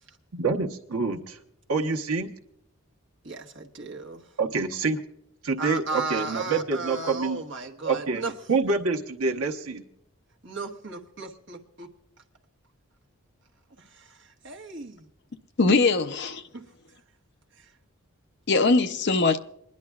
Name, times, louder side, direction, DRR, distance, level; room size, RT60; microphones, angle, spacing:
voice 1, 0.3-1.4 1.7-2.3 4.4-5.0 5.4-7.4 7.8-8.2 8.5-9.8, right 4 dB, 85° right, 1.1 m, -26 dB
voice 2, 3.2-4.3 5.6-8.3 10.4-11.9 13.8-15.1 16.5-16.7 17.5-17.7, right 3 dB, 55° right, 1.3 m, -36 dB
voice 3, 15.6-16.4 18.5-19.4, left 3 dB, 50° left, 0.6 m, -21 dB
27.5 x 10.5 x 2.4 m
head